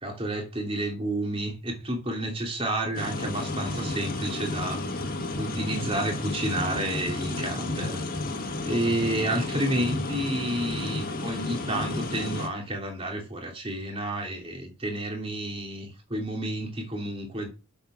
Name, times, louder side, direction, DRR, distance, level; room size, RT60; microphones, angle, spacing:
voice 1, 0.0-4.8 5.4-8.0 8.6-17.5, right 1 dB, 25° right, 2.8 m, -30 dB
sound 1, 2.9-12.5, left 2 dB, 40° left, 1.7 m, -32 dB
7.7 x 6.9 x 6.1 m
head